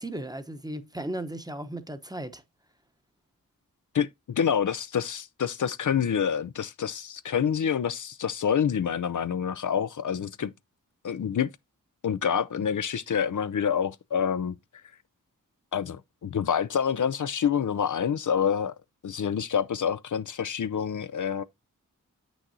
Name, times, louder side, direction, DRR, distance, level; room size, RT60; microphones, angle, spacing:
voice 1, 0.0-2.4, right 1 dB, 10° right, 0.9 m, -36 dB
voice 2, 3.9-10.5 11.0-11.5 12.0-14.6 15.7-18.8 19.0-21.4, left 7 dB, 65° left, 0.5 m, -27 dB
7.7 x 6.3 x 2.7 m
cardioid pair, 50°, 33 cm